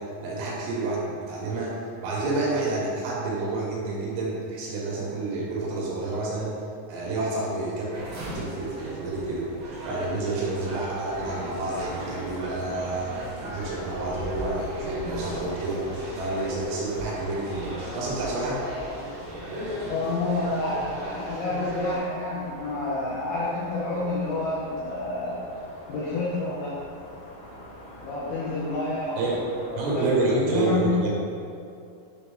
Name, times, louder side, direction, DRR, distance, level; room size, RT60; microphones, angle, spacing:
voice 1, 0.0-6.6 6.9-7.9 8.3-9.5 9.8-15.9 16.1-18.6 29.2-29.4 29.8-31.1, right 2 dB, 75° right, -4 dB, 3.9 m, -29 dB
sound 1, 7.9-22.0, equal, 55° right, 2.1 m, -36 dB
sound 2, 11.1-30.4, left 1 dB, 65° left, 2.6 m, -45 dB
voice 2, 19.9-25.4 25.9-26.7 28.0-29.3 29.7-31.1, left 3 dB, 85° left, -7 dB, 2.3 m, -29 dB
9.7 x 4.1 x 3.9 m, 2.5 s
omnidirectional pair, 5.9 m